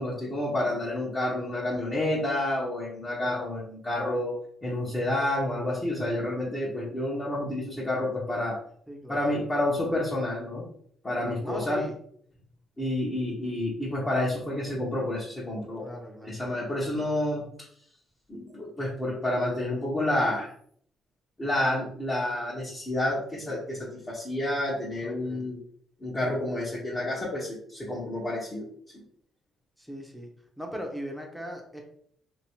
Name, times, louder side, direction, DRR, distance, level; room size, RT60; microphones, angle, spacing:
voice 1, 0.0-4.3 4.6-8.6 9.1-10.7 11.0-11.8 12.8-15.9 16.2-17.5 18.3-20.5 21.4-25.6 26.0-28.7 28.9-29.0, left 1 dB, 25° left, -7 dB, 1.1 m, -29 dB
voice 2, 8.9-9.2 11.4-11.9 15.8-16.3 25.0-25.4 29.8-30.3 30.6-31.8, equal, ahead, 1 dB, 0.9 m, -38 dB
2.9 x 2.9 x 3.0 m, 0.63 s
cardioid pair, 90°, 0 cm